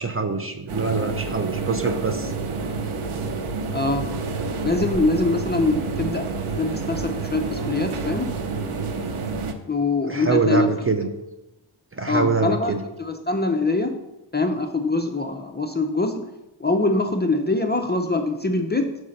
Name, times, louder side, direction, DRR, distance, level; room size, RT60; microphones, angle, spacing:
voice 1, 0.0-2.3 10.1-11.1 11.9-12.8, right 4 dB, 30° right, 7 dB, 0.5 m, -24 dB
sound 1, 0.7-9.5, right 4 dB, 80° right, 0.8 m, -29 dB
voice 2, 3.7-4.1 4.6-8.3 9.7-10.7 12.1-12.7 13.0-14.0 14.3-16.3 16.6-19.0, left 2 dB, 20° left, 5 dB, 0.4 m, -23 dB
5.5 x 4.8 x 6.3 m, 0.96 s
wide cardioid pair, 135°, 49 cm